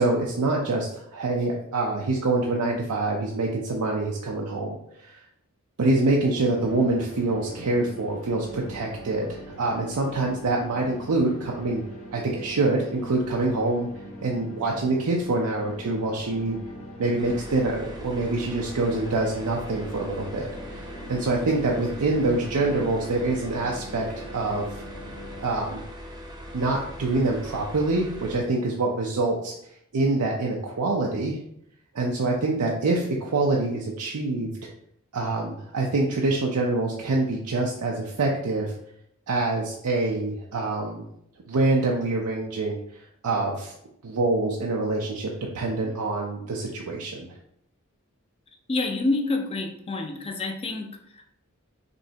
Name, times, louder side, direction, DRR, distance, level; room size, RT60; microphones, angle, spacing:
voice 1, 0.0-5.2 5.8-11.8 12.1-13.9 14.2-16.6 17.0-24.7 25.4-25.8 26.5-31.4 31.9-34.5 35.1-38.7 39.3-41.0 41.5-43.7 44.0-47.3, right 2 dB, 85° right, -1 dB, 0.6 m, -25 dB
sound 1, 6.4-25.4, equal, 70° left, 1.0 m, -42 dB
sound 2, 17.2-28.4, equal, 20° right, 0.7 m, -41 dB
voice 2, 48.7-51.3, left 2 dB, 25° left, 4 dB, 0.5 m, -28 dB
5.2 x 3.2 x 2.8 m, 0.75 s
head